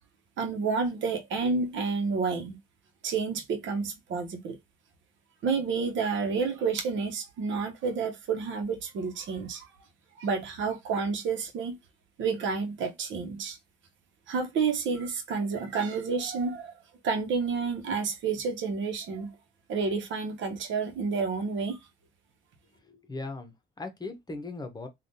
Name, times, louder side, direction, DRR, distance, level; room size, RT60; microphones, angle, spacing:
voice 1, 0.4-2.6 3.0-4.6 5.4-9.6 10.2-11.8 12.2-13.6 14.3-16.7 17.0-19.3 19.7-21.8, right 5 dB, 75° right, 0.9 m, -30 dB
voice 2, 22.9-24.9, left 3 dB, 20° left, 0.9 m, -39 dB
3.4 x 2.4 x 2.7 m
cardioid pair, 90°, 20 cm